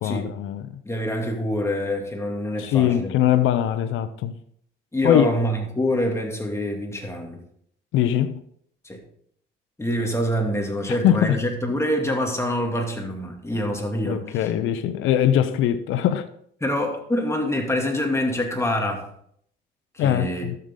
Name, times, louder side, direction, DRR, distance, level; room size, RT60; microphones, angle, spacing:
voice 1, 0.0-0.8 2.6-4.4 5.0-5.3 7.9-8.4 10.9-11.4 14.0-16.3 20.0-20.6, left 11 dB, 90° left, 0.6 m, -22 dB
voice 2, 0.8-3.1 4.9-7.4 8.8-9.0 9.8-14.5 16.6-19.1 19.9-20.5, left 1 dB, 15° left, 2.3 m, -25 dB
12.0 x 6.8 x 3.8 m
cardioid pair, 90°, 20 cm